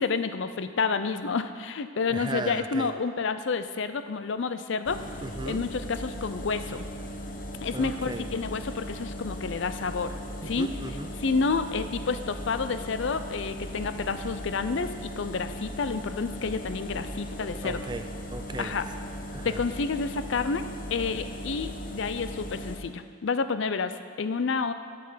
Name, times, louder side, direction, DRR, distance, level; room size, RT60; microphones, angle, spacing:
voice 1, 0.0-5.0 5.5-6.9 7.6-10.2 10.4-10.7 11.2-17.9 18.6-18.9 19.4-24.7, left 4 dB, 65° left, 11 dB, 0.5 m, -29 dB
voice 2, 2.1-2.9 5.2-5.7 7.7-8.3 10.4-11.1 17.4-18.8 19.3-19.6, right 2 dB, 20° right, 8 dB, 0.4 m, -37 dB
sound 1, 4.9-22.8, equal, 40° left, 0.8 m, -38 dB
11.5 x 6.8 x 5.6 m, 2.1 s
head